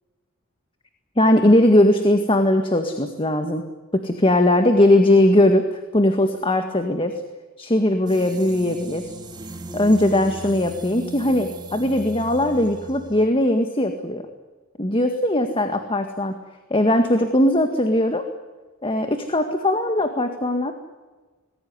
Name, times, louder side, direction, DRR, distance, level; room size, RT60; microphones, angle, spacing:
voice 1, 1.2-3.7 3.9-7.2 7.6-9.1 9.7-14.3 14.8-16.3 16.7-18.3 18.8-20.7, left 1 dB, 25° left, 6 dB, 1.8 m, -19 dB
sound 1, 8.1-13.3, right 2 dB, 20° right, 1.9 m, -37 dB
27.5 x 20.5 x 9.7 m, 1.3 s
head